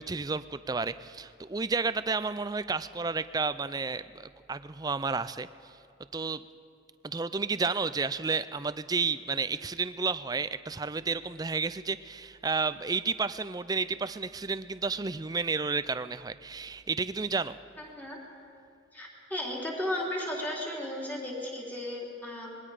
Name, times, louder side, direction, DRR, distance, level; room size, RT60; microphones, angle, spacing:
voice 1, 0.0-5.5 6.1-6.4 7.0-17.6, right 4 dB, 20° right, 13 dB, 0.4 m, -31 dB
voice 2, 18.9-22.6, left 1 dB, 10° left, -4 dB, 3.6 m, -35 dB
25.5 x 21.0 x 5.0 m, 2.4 s
head